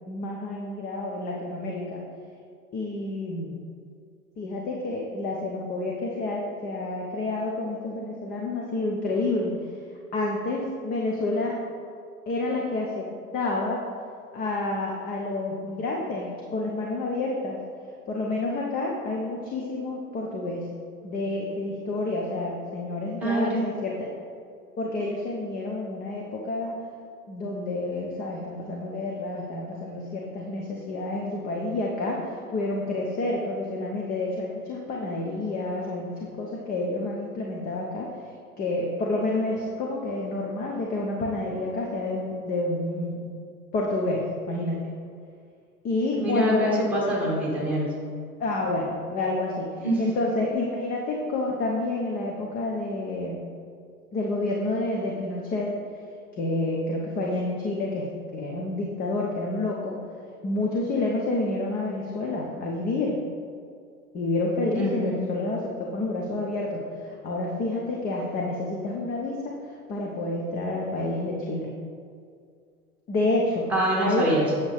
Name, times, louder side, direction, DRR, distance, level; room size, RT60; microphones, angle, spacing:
voice 1, 0.1-2.1 2.7-3.5 4.4-9.5 10.1-11.6 12.3-13.1 13.3-13.8 14.3-17.6 18.1-20.7 21.0-24.1 24.8-26.8 27.3-38.1 38.6-43.3 43.7-44.9 45.8-46.9 48.4-53.4 54.1-55.7 56.3-59.9 60.4-63.2 64.1-71.7 73.1-73.7 74.0-74.3, left 2 dB, 20° left, -1 dB, 0.8 m, -29 dB
voice 2, 23.2-23.6 46.2-47.9 49.8-50.0 64.7-65.1 73.7-74.5, right 1 dB, 5° right, -5 dB, 2.1 m, -25 dB
8.0 x 7.1 x 3.4 m, 2.2 s
figure-of-eight pair, 100°, 47 cm